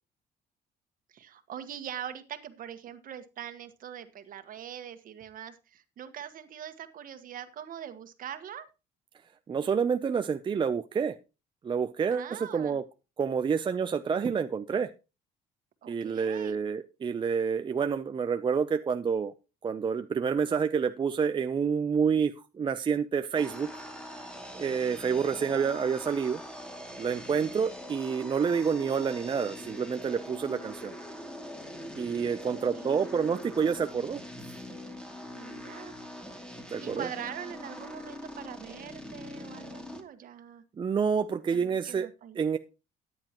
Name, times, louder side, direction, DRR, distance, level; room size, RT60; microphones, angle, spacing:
voice 1, 1.1-8.7 12.1-12.8 15.8-16.6 25.0-25.3 32.4-33.3 35.3-35.9 36.8-40.6 41.5-42.4, right 9 dB, 55° right, 10 dB, 1.5 m, -43 dB
voice 2, 9.5-11.2 11.6-12.8 13.2-14.9 15.9-19.3 19.6-23.8 24.5-26.4 27.0-30.9 32.0-34.2 36.7-37.1 40.8-42.1 42.4-42.6, right 6 dB, 30° right, 9 dB, 0.6 m, -28 dB
sound 1, 23.4-40.0, left 1 dB, 5° left, 2.4 m, -43 dB
14.0 x 9.7 x 3.0 m, 0.29 s
cardioid pair, 110°, 17 cm